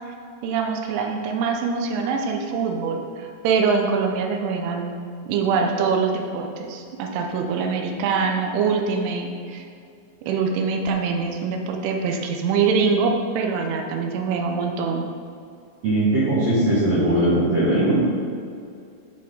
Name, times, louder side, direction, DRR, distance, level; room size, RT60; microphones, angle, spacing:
voice 1, 0.4-4.9 5.3-9.6 10.2-15.1, right 5 dB, 90° right, 3 dB, 3.1 m, -24 dB
voice 2, 15.8-18.1, right 1 dB, 70° right, -9 dB, 1.6 m, -19 dB
11.5 x 4.2 x 3.8 m, 2.4 s
omnidirectional pair, 5.4 m